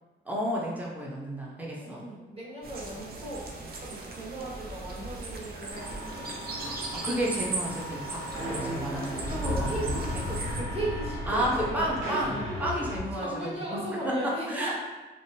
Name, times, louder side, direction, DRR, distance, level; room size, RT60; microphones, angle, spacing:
voice 1, 0.3-2.1 6.6-9.9 11.3-12.3 12.6-14.8, equal, 10° right, -4 dB, 0.7 m, -32 dB
voice 2, 1.7-3.5 3.8-6.3 9.4-12.5 13.1-14.8, right 2 dB, 30° right, -6 dB, 1.3 m, -37 dB
sound 1, 2.6-10.6, right 3 dB, 50° right, 0.5 m, -38 dB
sound 2, 5.7-13.0, left 1 dB, 70° right, 1.4 m, -35 dB
3.5 x 2.0 x 2.6 m, 1.2 s
cardioid pair, 65°, 21 cm